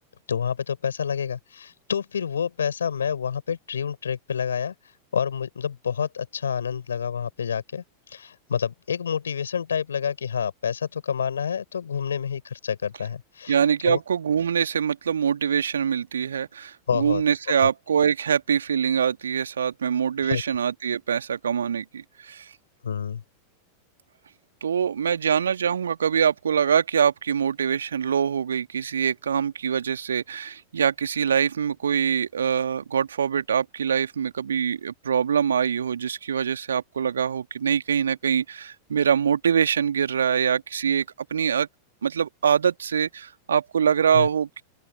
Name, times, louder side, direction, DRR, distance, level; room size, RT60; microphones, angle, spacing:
voice 1, 0.3-4.7 5.1-13.6 13.8-14.0 16.9-17.2 20.2-20.4 22.8-23.2 44.1-44.3, left 7 dB, 70° left, 5.8 m, -28 dB
voice 2, 13.5-22.5 24.6-41.1 41.3-41.7 42.0-44.6, right 7 dB, 70° right, 2.3 m, -24 dB
open air
figure-of-eight pair, 90°, 0 cm